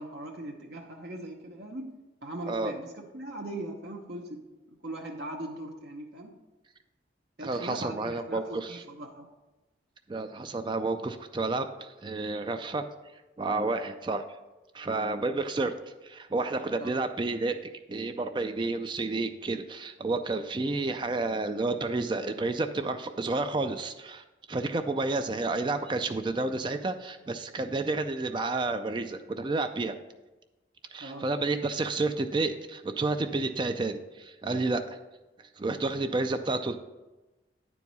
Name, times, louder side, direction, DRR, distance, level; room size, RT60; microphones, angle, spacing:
voice 1, 0.0-1.9 2.2-2.9 3.1-4.4 4.8-6.3 7.4-9.3 16.8-16.9 31.0-31.3, right 1 dB, 55° right, -1 dB, 0.8 m, -39 dB
voice 2, 7.4-8.8 10.1-12.9 13.4-14.2 14.7-15.7 16.0-29.9 30.9-35.0 35.6-36.8, right 3 dB, 25° right, 8 dB, 0.3 m, -30 dB
9.7 x 4.6 x 5.4 m, 1.1 s
head